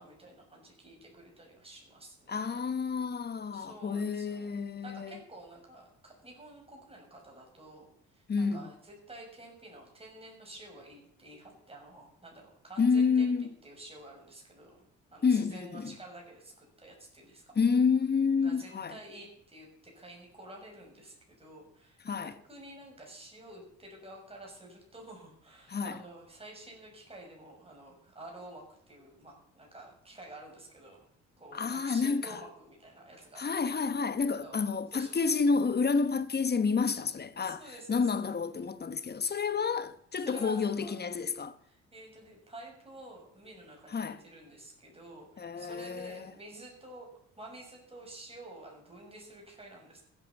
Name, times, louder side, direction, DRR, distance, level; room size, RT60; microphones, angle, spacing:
voice 1, 0.0-2.7 3.5-4.5 4.8-14.8 15.1-17.5 18.4-31.0 31.4-33.7 34.4-34.6 34.9-35.3 37.4-38.1 40.2-40.9 41.7-47.1 47.4-50.0, right 1 dB, 20° right, 6.5 m, -50 dB
voice 2, 2.3-5.2 8.3-8.7 12.8-13.5 15.2-15.9 17.6-19.0 22.0-22.3 25.7-26.0 31.5-32.4 33.4-37.6 37.9-41.5 43.9-44.2 45.4-46.2, left 5 dB, 35° left, 1.1 m, -29 dB
15.0 x 9.3 x 7.1 m
cardioid pair, 90°, 30 cm